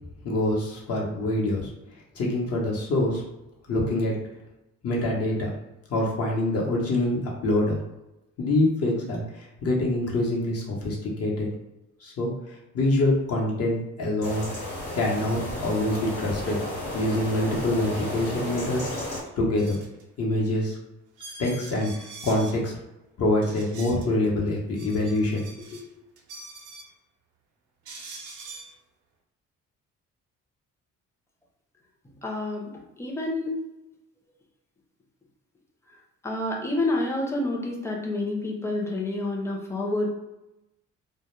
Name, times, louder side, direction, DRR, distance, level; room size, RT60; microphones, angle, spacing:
voice 1, 0.2-1.7 2.1-3.2 3.7-4.1 4.8-5.5 5.9-7.8 8.4-11.5 12.0-12.3 12.7-14.5 14.9-16.6 16.9-18.9 19.4-19.8 20.2-20.8 21.4-21.9 22.2-22.7 23.2-25.5 25.7-25.8, left 1 dB, 55° left, -3 dB, 0.8 m, -25 dB
sound 1, 14.2-19.2, left 1 dB, 85° left, 1.1 m, -33 dB
sound 2, 19.6-20.0 20.6-20.7 21.2-22.6 23.4-24.1 24.6-25.9 26.2-26.9 27.9-28.7, right 3 dB, 80° right, 0.6 m, -43 dB
voice 2, 32.2-32.7 33.0-33.6 36.2-40.1, left 2 dB, 10° left, -1 dB, 0.6 m, -28 dB
2.1 x 2.1 x 3.0 m, 0.95 s
cardioid pair, 90°, 30 cm